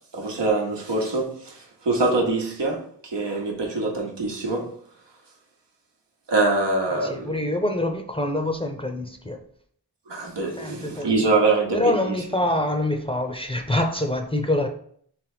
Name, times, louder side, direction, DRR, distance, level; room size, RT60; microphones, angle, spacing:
voice 1, 0.1-4.7 6.3-7.3 10.1-12.2, right 3 dB, 85° right, 1.0 m, -24 dB
voice 2, 6.9-9.4 10.6-11.1 11.7-14.7, left 1 dB, 15° left, 0.6 m, -25 dB
3.3 x 3.3 x 4.8 m
cardioid pair, 40°, 42 cm